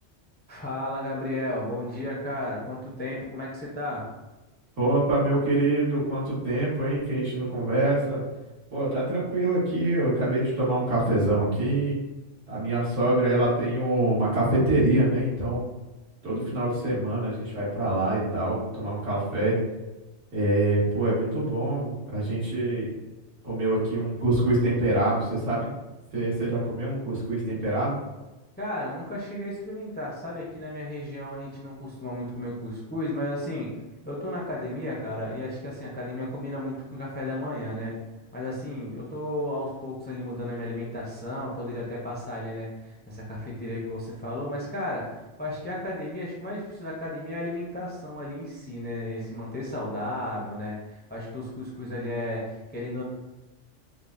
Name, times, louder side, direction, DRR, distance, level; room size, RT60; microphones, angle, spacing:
voice 1, 0.5-4.0 28.6-33.7 34.1-37.9 38.3-53.0, left 1 dB, 15° left, -3 dB, 0.4 m, -34 dB
voice 2, 4.8-8.2 8.7-11.9 12.5-15.7 16.2-19.5 20.3-22.9 23.4-25.7 26.1-28.0, right 2 dB, 80° right, -9 dB, 1.8 m, -25 dB
5.3 x 2.1 x 2.5 m, 1.1 s
omnidirectional pair, 1.2 m